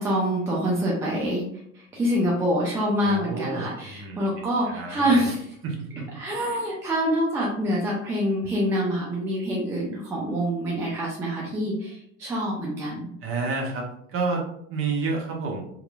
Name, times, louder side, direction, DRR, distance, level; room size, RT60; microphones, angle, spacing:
voice 1, 0.0-1.4 1.7-5.5 6.2-13.1, equal, 5° right, -4 dB, 0.3 m, -26 dB
voice 2, 3.0-5.3 5.6-6.2 13.2-15.6, right 4 dB, 35° right, 0 dB, 0.7 m, -30 dB
2.8 x 2.1 x 2.3 m, 0.70 s
figure-of-eight pair, 80°, 40 cm